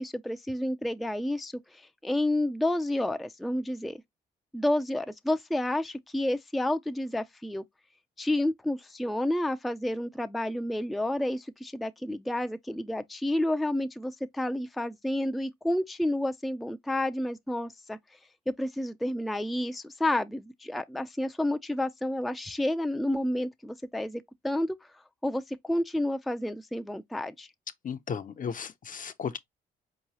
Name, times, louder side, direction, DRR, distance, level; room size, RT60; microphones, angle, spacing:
voice 1, 0.0-4.0 4.5-7.6 8.2-18.0 18.5-24.8 25.2-27.5, left 1 dB, ahead, 0.4 m, -30 dB
voice 2, 27.8-29.4, left 7 dB, 40° left, 0.6 m, -35 dB
4.5 x 3.0 x 2.8 m
supercardioid pair, 60°, 20 cm